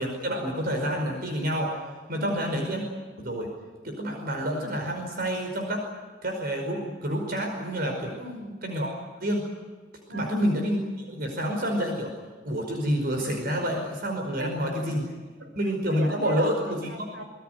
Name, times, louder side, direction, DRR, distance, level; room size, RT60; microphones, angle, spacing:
voice 1, 0.0-1.8 2.1-2.8 3.2-3.5 3.8-5.9 6.2-8.1 8.6-8.9 9.2-9.5 10.1-12.1 12.4-15.0 15.5-17.1, equal, 55° right, 2 dB, 5.1 m, -28 dB
voice 2, 2.1-2.6 8.2-8.6 10.1-10.5 14.3-17.2, right 1 dB, 80° right, 6 dB, 5.3 m, -39 dB
26.0 x 20.5 x 8.0 m, 1.4 s
head